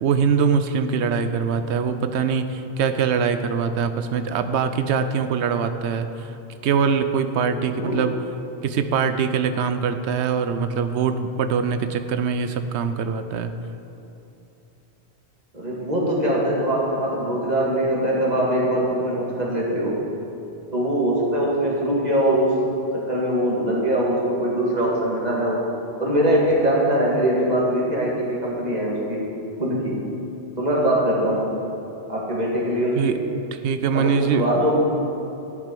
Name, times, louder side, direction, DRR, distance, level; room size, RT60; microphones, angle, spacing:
voice 1, 0.0-6.3 6.6-8.1 8.6-13.5 33.0-33.2 33.5-34.6, right 6 dB, 85° right, 9 dB, 0.9 m, -23 dB
voice 2, 7.5-7.9 15.5-20.0 20.7-22.6 22.9-25.7 26.0-29.3 29.6-30.0 30.6-31.5 32.1-33.2 33.9-34.8, right 1 dB, 40° right, -4 dB, 2.0 m, -22 dB
10.5 x 8.2 x 5.3 m, 2.8 s
omnidirectional pair, 1.1 m